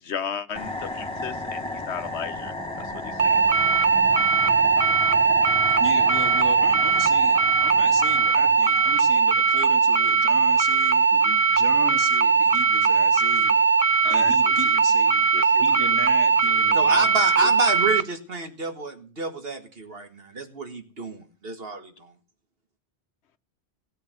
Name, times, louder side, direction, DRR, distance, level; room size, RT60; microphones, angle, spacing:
voice 1, 0.0-3.3 11.1-11.4 14.0-14.5 15.3-15.6, left 7 dB, 80° left, 12 dB, 1.2 m, -35 dB
sound 1, 0.6-9.4, left 2 dB, 5° left, 2.7 m, -34 dB
sound 2, 3.2-18.0, right 5 dB, 35° right, 0.9 m, -20 dB
voice 2, 5.8-11.1 11.5-13.6 14.1-15.3 15.5-17.1, equal, 15° right, 2 dB, 3.3 m, -35 dB
voice 3, 16.7-22.1, right 3 dB, 60° right, 6 dB, 2.0 m, -29 dB
17.5 x 8.0 x 7.8 m, 0.37 s
omnidirectional pair, 1.1 m